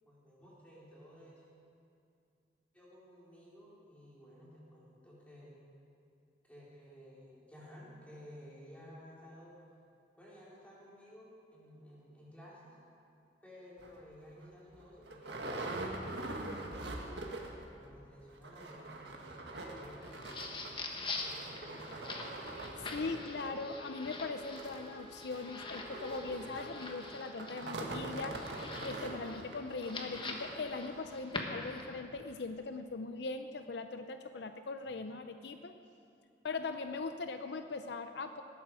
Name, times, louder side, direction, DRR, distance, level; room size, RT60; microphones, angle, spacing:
voice 1, 0.0-1.4 2.7-5.6 6.5-9.5 10.2-12.8 13.4-22.0, equal, 10° left, -7 dB, 4.2 m, -55 dB
sound 1, 13.8-13.9 14.4-14.5 14.7-17.7 17.9-18.0 18.3-31.1 31.7-31.8 32.2-32.3, right 2 dB, 70° right, 1.7 m, -44 dB
sound 2, 20.0-32.0, left 3 dB, 30° left, 1.4 m, -45 dB
Wind instrument woodwind instrument, 21.3-29.8, right 2 dB, 30° right, 1.7 m, -56 dB
voice 2, 22.8-28.4 28.8-35.7 36.4-38.4, left 3 dB, 70° left, 8 dB, 0.6 m, -40 dB
18.5 x 13.0 x 5.0 m, 2.5 s
head